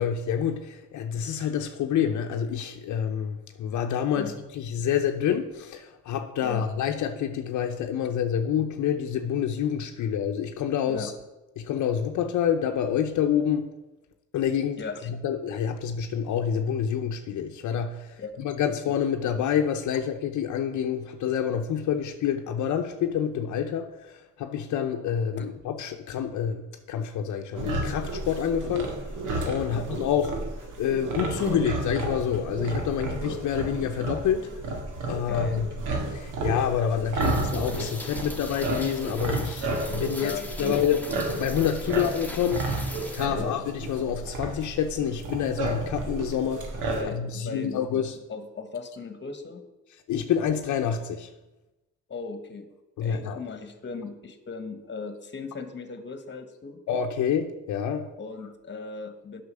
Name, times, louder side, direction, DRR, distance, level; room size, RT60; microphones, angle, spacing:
voice 1, 0.0-11.1 11.6-13.7 14.3-14.8 15.1-26.6 26.9-29.2 29.4-30.3 30.8-34.5 35.1-35.7 36.1-41.0 41.4-46.7 47.0-48.2 50.1-51.3 53.0-53.4 56.9-58.1, left 8 dB, 70° left, 5 dB, 0.8 m, -27 dB
voice 2, 14.8-15.1 18.2-18.4 25.4-25.5 29.7-29.9 35.3-35.6 40.2-40.9 41.9-42.0 43.3-43.5 46.9-47.8 48.3-49.6 52.1-52.7 53.0-56.8 58.2-59.4, left 4 dB, 35° left, 9 dB, 1.3 m, -37 dB
sound 1, 27.5-47.0, right 2 dB, 85° right, 1.8 m, -32 dB
Rain, 37.2-43.3, left 1 dB, 5° left, 1.3 m, -41 dB
8.2 x 5.8 x 6.7 m, 1.0 s
cardioid pair, 90°, 30 cm